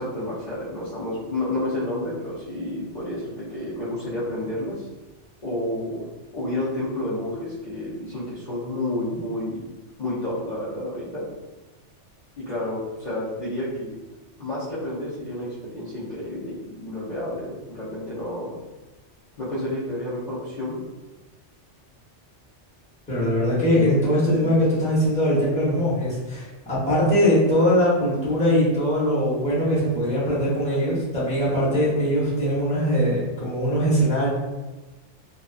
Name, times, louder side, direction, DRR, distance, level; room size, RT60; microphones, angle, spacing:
voice 1, 0.0-4.9 5.4-6.1 6.3-9.6 10.0-11.3 12.4-14.0 14.4-18.6 19.4-20.8 23.8-24.6, left 1 dB, 45° left, -11 dB, 0.7 m, -30 dB
voice 2, 23.1-34.3, equal, 5° left, -9 dB, 0.9 m, -21 dB
2.6 x 2.3 x 2.3 m, 1.1 s
omnidirectional pair, 1.2 m